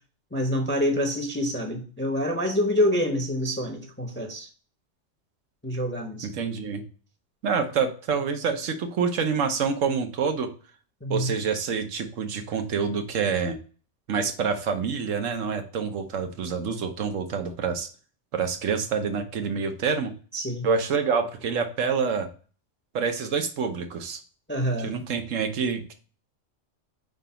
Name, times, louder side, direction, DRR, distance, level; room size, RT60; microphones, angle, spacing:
voice 1, 0.3-4.5 5.6-6.3 11.0-11.3 20.3-20.7 24.5-25.0, equal, 10° left, 0.6 m, -26 dB
voice 2, 6.2-6.8 7.4-10.5 11.1-13.6 14.1-17.9 18.3-20.1 20.6-22.3 22.9-24.2 24.8-25.9, right 6 dB, 90° right, 1.2 m, -27 dB
5.0 x 3.9 x 5.5 m
omnidirectional pair, 1.3 m